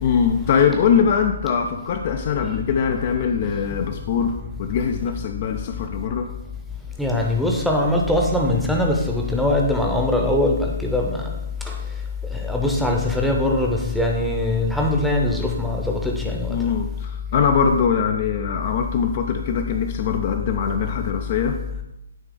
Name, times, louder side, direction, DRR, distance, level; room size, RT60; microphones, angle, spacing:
voice 1, 0.0-6.3 16.5-21.8, left 6 dB, 35° left, 5 dB, 0.4 m, -22 dB
voice 2, 7.0-11.3 11.6-11.8 12.3-16.7, left 2 dB, ahead, 0 dB, 0.8 m, -21 dB
8.9 x 3.3 x 3.8 m, 0.88 s
figure-of-eight pair, 135°, 0 cm